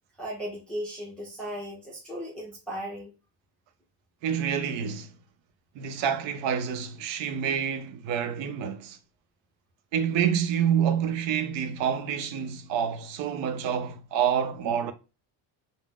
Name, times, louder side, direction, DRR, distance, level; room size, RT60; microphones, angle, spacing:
voice 1, 0.2-3.1, equal, 5° left, 0.5 m, -36 dB
voice 2, 4.2-5.1 5.8-9.0 9.9-14.9, right 8 dB, 75° right, 0.6 m, -28 dB
2.3 x 2.0 x 3.4 m
cardioid pair, 160°, 44 cm